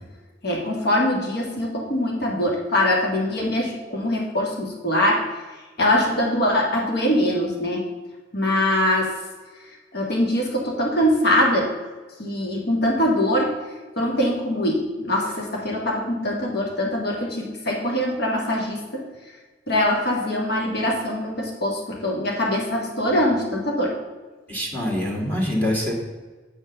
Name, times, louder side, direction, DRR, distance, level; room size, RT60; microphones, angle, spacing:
voice 1, 0.4-5.2 5.8-7.8 8.3-9.1 9.9-11.7 12.2-13.6 14.0-19.1 19.7-24.0, left 1 dB, 60° left, -1 dB, 1.8 m, -23 dB
voice 2, 24.5-26.0, left 1 dB, 10° left, -1 dB, 1.7 m, -24 dB
8.5 x 4.7 x 6.7 m, 1.3 s
head